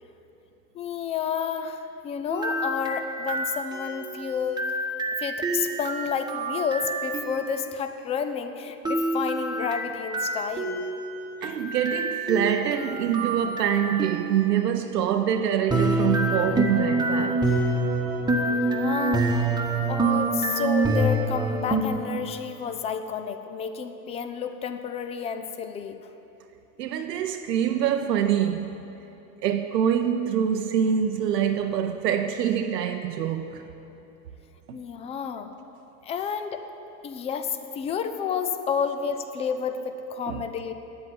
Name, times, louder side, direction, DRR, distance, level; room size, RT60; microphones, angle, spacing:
voice 1, 0.7-4.7 5.2-10.9 18.5-19.2 19.9-26.1 34.7-35.5 36.0-36.6 37.0-40.7, left 6 dB, 15° left, 8 dB, 0.3 m, -30 dB
sound 1, 2.3-7.6 8.8-14.6 15.7-21.8, right 2 dB, 10° right, 1.2 m, -27 dB
voice 2, 11.4-17.5 26.8-28.7 29.4-33.7 34.7-34.8 40.3-40.4, right 9 dB, 80° right, 5 dB, 0.7 m, -25 dB
9.2 x 7.9 x 9.4 m, 3.0 s
hypercardioid pair, 90°, 49 cm